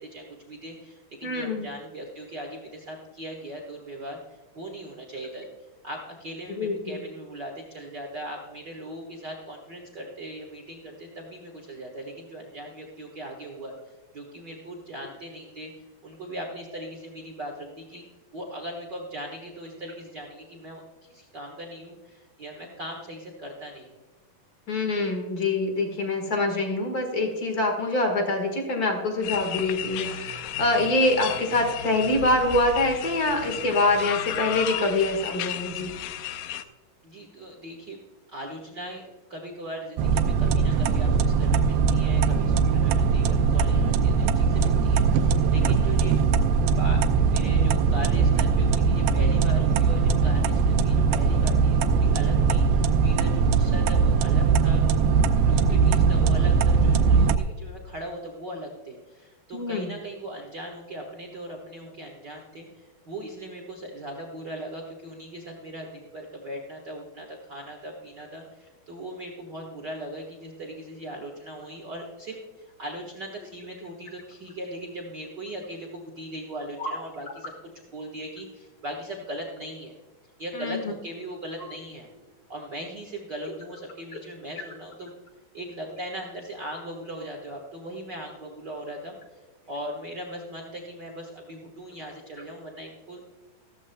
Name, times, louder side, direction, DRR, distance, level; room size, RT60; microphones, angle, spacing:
voice 1, 0.0-5.5 5.8-15.7 16.0-18.0 18.3-24.0 37.0-38.0 38.3-46.2 46.8-47.0 47.3-55.0 55.4-77.5 77.9-79.9 80.4-82.1 82.5-85.1 85.5-89.4 89.7-93.3, right 1 dB, 60° right, 0 dB, 1.1 m, -39 dB
voice 2, 1.2-1.7 6.5-6.9 24.7-35.9 55.7-55.9 59.5-59.9 76.8-76.9 80.5-80.9, left 2 dB, 55° left, 3 dB, 1.0 m, -25 dB
sound 1, 29.2-36.6, left 10 dB, 90° left, 1.7 m, -33 dB
sound 2, 40.0-57.4, right 5 dB, 90° right, 2.6 m, -21 dB
15.0 x 14.5 x 2.2 m, 1.2 s
omnidirectional pair, 4.3 m